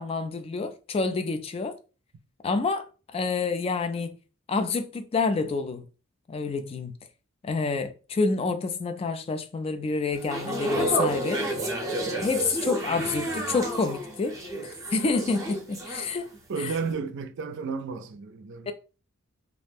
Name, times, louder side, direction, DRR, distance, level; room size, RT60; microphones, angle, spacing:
voice 1, 0.0-1.8 2.4-2.9 3.1-4.1 4.5-5.9 6.3-6.9 7.4-11.4 12.0-14.4 14.9-16.3 18.7-18.8, left 4 dB, 25° left, 0.3 m, -28 dB
sound 1, 10.1-16.4 16.7-16.9, right 1 dB, 15° right, 0.7 m, -31 dB
voice 2, 16.5-18.7, right 5 dB, 60° right, 0.4 m, -32 dB
2.4 x 2.1 x 3.3 m
head